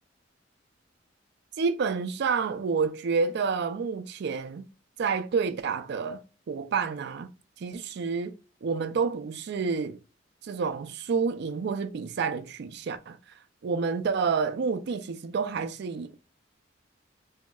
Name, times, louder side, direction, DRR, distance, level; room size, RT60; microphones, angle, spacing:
voice 1, 1.6-4.7 5.0-6.2 6.5-7.3 7.6-8.3 8.6-10.0 10.4-13.2 13.6-16.2, right 5 dB, 60° right, 0.4 m, -29 dB
3.0 x 2.7 x 2.2 m
head